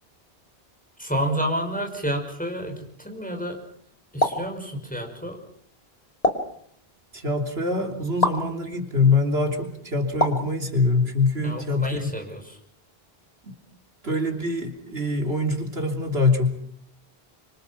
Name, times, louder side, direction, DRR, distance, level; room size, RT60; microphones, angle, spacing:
voice 1, 1.0-3.6 4.1-5.4 11.4-12.6, equal, 10° left, 2 dB, 5.7 m, -29 dB
sound 1, 4.2-4.5 6.2-6.6 8.2-8.5 10.2-10.5, left 1 dB, 35° left, 2.6 m, -23 dB
voice 2, 7.1-12.1 13.4-13.5 14.0-16.5, left 3 dB, 75° right, 4 dB, 3.6 m, -24 dB
26.0 x 25.5 x 5.9 m, 0.64 s
omnidirectional pair, 1.0 m